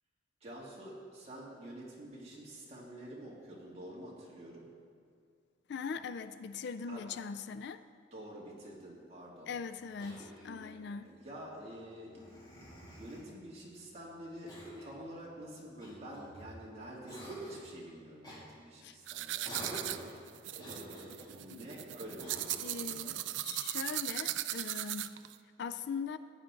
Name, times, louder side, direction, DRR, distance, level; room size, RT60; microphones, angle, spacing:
voice 1, 0.4-4.7 6.9-7.1 8.1-9.5 10.6-21.1 21.3-23.2, right 1 dB, 35° right, -5 dB, 2.5 m, -49 dB
voice 2, 5.7-7.8 9.5-11.1 18.8-19.0 21.5-21.6 22.6-23.2 23.4-25.1 25.6-26.2, left 5 dB, 60° left, 12 dB, 0.4 m, -41 dB
Cough, 10.0-10.7 12.1-13.3 14.5-15.0 15.8-16.6 17.1-17.7 18.2-18.4 19.4-20.1 20.6-21.3 22.2-22.7, equal, 25° left, 2.9 m, -47 dB
sound 1, 19.1-25.3, right 14 dB, 70° right, 0.4 m, -38 dB
15.0 x 9.9 x 3.8 m, 2.2 s
head